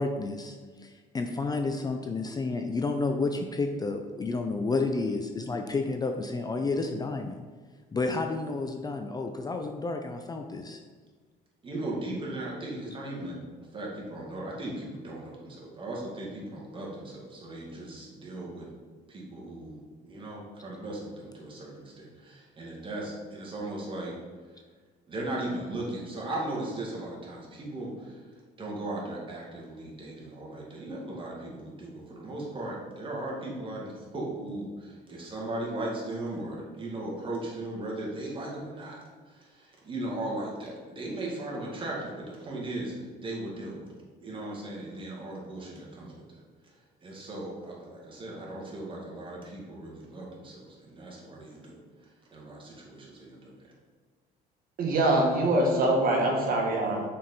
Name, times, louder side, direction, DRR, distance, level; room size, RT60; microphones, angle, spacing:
voice 1, 0.0-7.4 7.9-10.8, left 3 dB, 25° left, 5 dB, 0.4 m, -31 dB
voice 2, 11.6-13.4 13.7-18.7 19.1-24.2 24.5-24.6 25.1-28.3 28.6-39.0 39.3-43.9 44.2-53.7, right 1 dB, 30° right, -3 dB, 1.9 m, -37 dB
voice 3, 54.8-57.0, right 1 dB, 60° right, -1 dB, 1.6 m, -24 dB
6.1 x 4.4 x 4.1 m, 1.4 s
cardioid pair, 110°, 17 cm